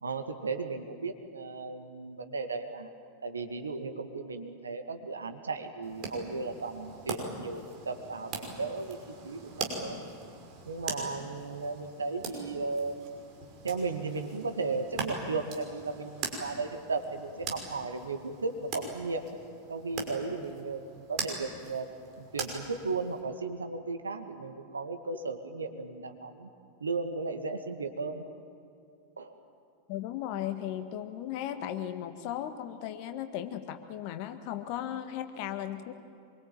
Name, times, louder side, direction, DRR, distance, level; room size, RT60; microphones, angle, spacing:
voice 1, 0.0-2.9 3.2-9.0 9.2-10.0 10.7-13.0 13.6-19.3 19.7-21.9 22.2-26.5 26.8-28.2 29.2-29.4, right 4 dB, 75° right, 6 dB, 2.0 m, -35 dB
sound 1, 5.8-23.2, right 4 dB, 40° right, 5.5 m, -41 dB
voice 2, 29.9-35.9, left 11 dB, 45° left, 8 dB, 1.8 m, -36 dB
25.5 x 23.0 x 9.0 m, 2.5 s
figure-of-eight pair, 90°, 0 cm